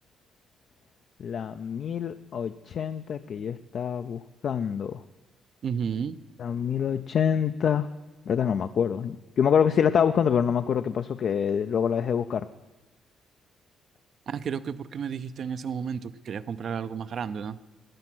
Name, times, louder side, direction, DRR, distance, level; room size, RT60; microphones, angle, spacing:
voice 1, 1.2-5.0 6.4-7.9 8.3-12.5, left 7 dB, 60° left, 10 dB, 0.4 m, -26 dB
voice 2, 5.6-6.2 14.3-17.6, right 7 dB, 60° right, 15 dB, 0.5 m, -32 dB
13.0 x 9.0 x 6.1 m, 1.1 s
cardioid pair, 90°, 0 cm